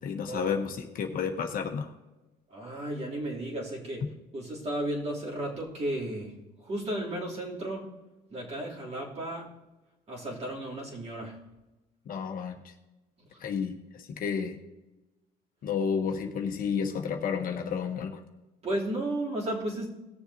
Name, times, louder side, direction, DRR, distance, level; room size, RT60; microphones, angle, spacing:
voice 1, 0.0-1.9 12.1-12.5 13.4-14.6 15.6-18.2, left 6 dB, 55° left, 4 dB, 1.2 m, -31 dB
voice 2, 2.5-4.0 4.3-6.3 6.6-7.8 8.3-9.4 10.1-11.4 18.6-19.9, right 1 dB, 40° right, -4 dB, 3.3 m, -33 dB
19.0 x 6.9 x 2.8 m, 1.1 s
cardioid pair, 110°, 17 cm